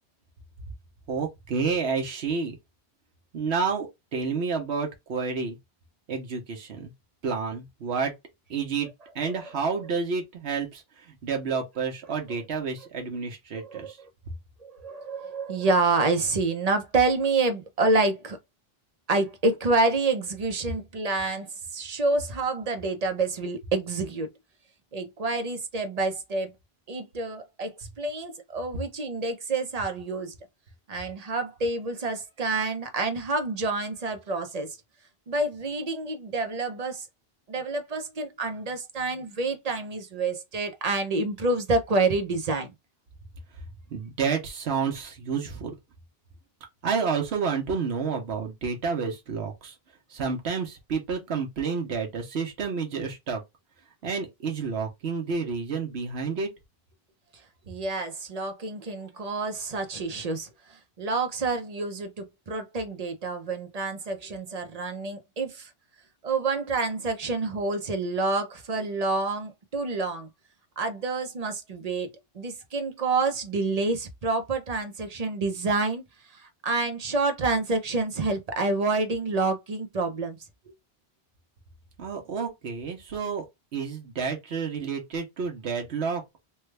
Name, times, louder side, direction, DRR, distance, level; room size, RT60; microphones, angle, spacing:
voice 1, 1.1-2.6 3.3-5.6 6.1-6.9 7.2-8.1 8.5-8.9 9.1-14.0 43.9-45.7 46.8-49.8 50.1-53.4 54.0-56.5 82.0-83.5 83.7-86.2, right 5 dB, 85° right, 1.1 m, -30 dB
voice 2, 14.6-18.4 19.1-24.3 24.9-26.5 26.9-30.3 30.9-34.8 35.3-37.1 37.5-42.7 57.7-65.7 66.2-70.3 70.8-76.0 76.3-80.4 80.7-80.8, right 3 dB, 45° right, 0.7 m, -28 dB
3.3 x 2.3 x 3.2 m
omnidirectional pair, 1.1 m